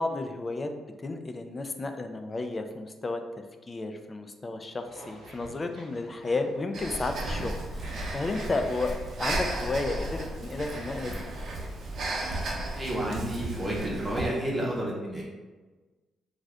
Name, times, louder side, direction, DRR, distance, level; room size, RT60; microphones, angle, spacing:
voice 1, 0.0-3.2 3.7-8.9 9.2-11.1, left 2 dB, 30° left, 6 dB, 0.3 m, -32 dB
sound 1, 4.8-9.9, right 1 dB, 85° right, 0.9 m, -51 dB
Breathing, 6.7-14.3, right 2 dB, 65° right, 0.6 m, -34 dB
voice 2, 12.3-15.2, right 1 dB, 20° right, -4 dB, 0.7 m, -31 dB
2.5 x 2.4 x 3.3 m, 1.3 s
cardioid pair, 90°, 0 cm